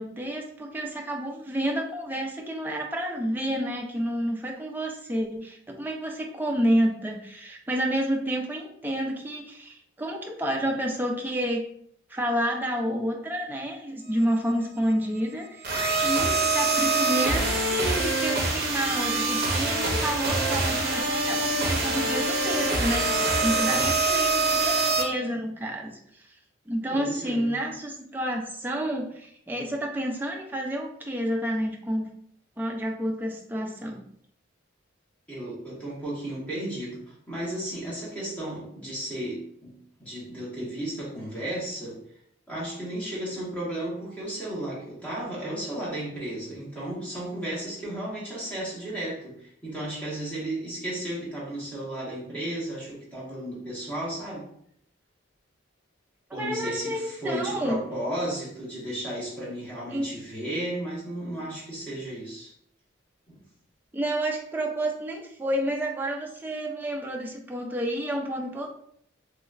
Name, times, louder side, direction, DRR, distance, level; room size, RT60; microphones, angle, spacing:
voice 1, 0.0-11.6 12.1-26.3 26.7-32.1 32.6-34.0 56.4-57.8 59.9-60.1 63.9-68.7, right 1 dB, 10° right, 0 dB, 0.4 m, -29 dB
sound 1, 15.6-25.0, right 3 dB, 50° right, 0.6 m, -25 dB
voice 2, 26.9-27.5 35.3-42.0 42.5-54.5 56.3-62.5 63.3-63.4, right 1 dB, 5° left, -8 dB, 1.1 m, -34 dB
3.1 x 3.0 x 2.4 m, 0.68 s
head